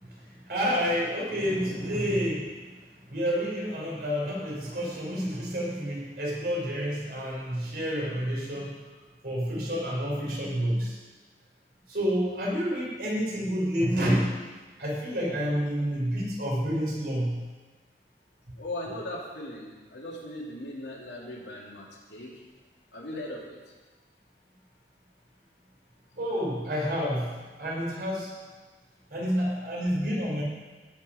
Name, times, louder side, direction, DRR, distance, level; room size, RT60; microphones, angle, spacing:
voice 1, 0.0-2.5 3.1-8.7 9.2-11.0 11.9-14.3 14.8-17.4 26.1-27.3 27.6-28.3 29.1-30.4, equal, 55° right, -4 dB, 4.0 m, -29 dB
voice 2, 18.6-22.3 22.9-23.6, left 1 dB, 90° left, -3 dB, 2.7 m, -38 dB
17.0 x 5.7 x 5.6 m, 1.3 s
head